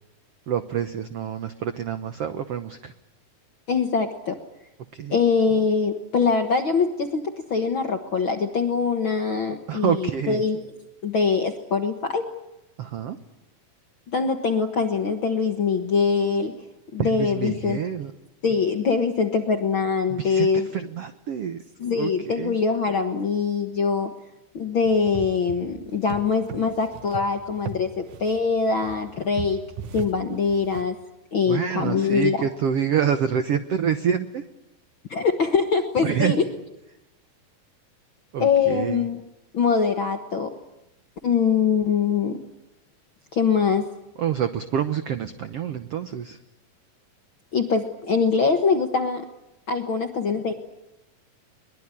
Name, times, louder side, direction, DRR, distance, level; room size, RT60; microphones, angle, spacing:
voice 1, 0.5-2.9 4.9-5.2 9.7-10.4 12.8-13.2 17.0-18.1 20.1-21.6 22.0-22.5 31.5-34.4 36.0-36.4 38.3-39.0 44.2-46.4, right 8 dB, 85° right, 9 dB, 1.3 m, -27 dB
voice 2, 3.7-4.4 5.1-10.6 11.0-12.2 14.1-16.5 16.9-17.8 18.4-20.7 21.8-24.1 24.5-29.6 29.9-30.9 31.3-32.4 35.1-36.5 38.4-39.2 39.5-40.5 41.2-42.4 43.3-43.9 47.5-49.2 49.7-50.5, left 5 dB, 60° left, 5 dB, 1.4 m, -23 dB
sound 1, 24.8-30.8, right 7 dB, 65° right, 2.2 m, -38 dB
23.0 x 21.0 x 10.0 m, 0.90 s
omnidirectional pair, 4.3 m